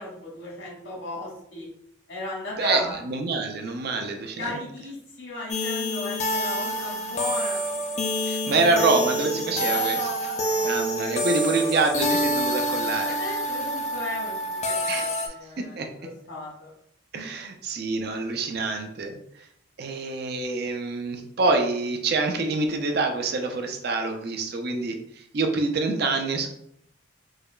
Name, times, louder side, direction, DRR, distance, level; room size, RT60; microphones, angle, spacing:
voice 1, 0.0-1.7 2.1-3.0 4.4-7.6 9.7-11.6 13.1-15.8 16.0-16.7, left 2 dB, 75° left, -4 dB, 1.5 m, -36 dB
voice 2, 2.5-4.5 8.3-10.1 10.6-13.1 14.9-15.3 15.8-15.9 17.1-19.1 19.8-26.5, right 3 dB, 50° right, 4 dB, 0.4 m, -26 dB
sound 1, 5.5-15.3, equal, 35° left, 0.4 m, -27 dB
4.7 x 2.3 x 2.2 m, 0.73 s
head